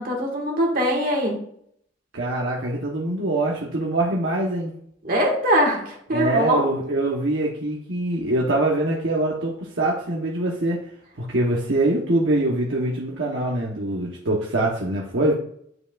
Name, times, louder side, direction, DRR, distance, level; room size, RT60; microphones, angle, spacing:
voice 1, 0.0-1.4 5.0-6.6, equal, 50° right, 0 dB, 1.8 m, -22 dB
voice 2, 2.1-4.7 6.1-10.8 11.2-15.3, right 2 dB, 70° right, -2 dB, 1.1 m, -24 dB
9.9 x 4.8 x 2.4 m, 0.65 s
head